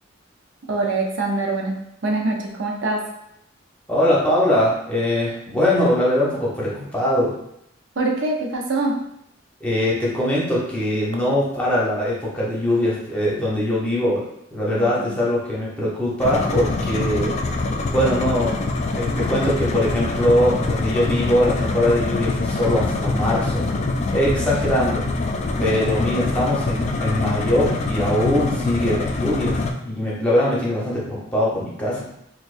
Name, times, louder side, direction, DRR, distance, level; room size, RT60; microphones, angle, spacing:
voice 1, 0.7-1.8 2.0-3.0 8.0-9.0 14.7-15.1, right 2 dB, 70° right, 0 dB, 0.6 m, -24 dB
voice 2, 3.9-7.3 9.6-14.2 14.5-17.4 17.9-18.6 18.9-23.7 24.1-25.0 25.6-32.1, left 1 dB, 5° left, -7 dB, 1.0 m, -21 dB
sound 1, 16.2-29.7, left 3 dB, 35° left, 0.3 m, -24 dB
4.4 x 2.3 x 2.5 m, 0.77 s
head